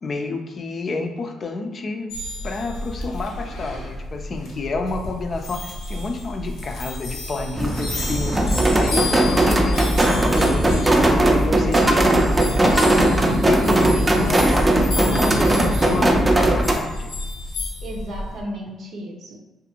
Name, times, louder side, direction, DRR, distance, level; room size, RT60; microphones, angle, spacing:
voice 1, 0.0-2.1 2.4-8.4 8.8-13.0 13.4-17.1, left 3 dB, 45° left, 4 dB, 0.4 m, -29 dB
sound 1, 2.1-18.4, left 2 dB, 80° left, 0.7 m, -31 dB
sound 2, 7.6-16.7, right 1 dB, 25° right, 0.5 m, -18 dB
voice 2, 8.3-8.8 17.8-19.4, equal, 75° right, -1 dB, 0.6 m, -34 dB
2.5 x 2.5 x 2.9 m, 1.1 s
cardioid pair, 70°, 0 cm